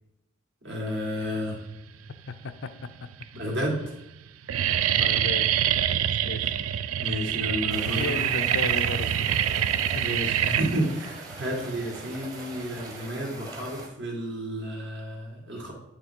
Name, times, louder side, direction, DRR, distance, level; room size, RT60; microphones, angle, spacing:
voice 1, 0.6-1.6 3.3-4.0 7.0-8.2 10.0-15.7, equal, 60° right, -2 dB, 1.9 m, -31 dB
sound 1, 1.9-2.5 3.1-3.2 3.5-3.9 4.1-13.1, right 10 dB, 80° right, 0.4 m, -26 dB
voice 2, 2.3-3.1 4.5-5.8 6.2-6.5 7.9-9.5 9.9-10.1, left 4 dB, 60° left, 11 dB, 0.5 m, -36 dB
sound 2, 7.7-13.9, right 2 dB, 20° right, 1.1 m, -42 dB
9.2 x 3.3 x 4.5 m, 0.91 s
head